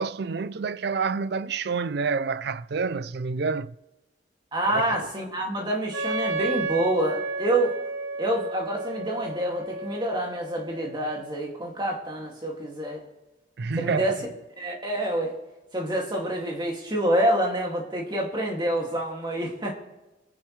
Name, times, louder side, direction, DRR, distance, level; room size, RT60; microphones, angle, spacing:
voice 1, 0.0-3.7 4.7-5.0 13.6-14.2, right 5 dB, 55° right, 0.4 m, -28 dB
voice 2, 4.5-7.7 8.2-13.0 13.8-14.3 14.6-15.3 15.7-19.7, right 1 dB, 20° right, 2.4 m, -27 dB
Wind instrument woodwind instrument, 5.9-11.6, right 3 dB, 75° right, 1.1 m, -32 dB
27.5 x 10.0 x 3.3 m
head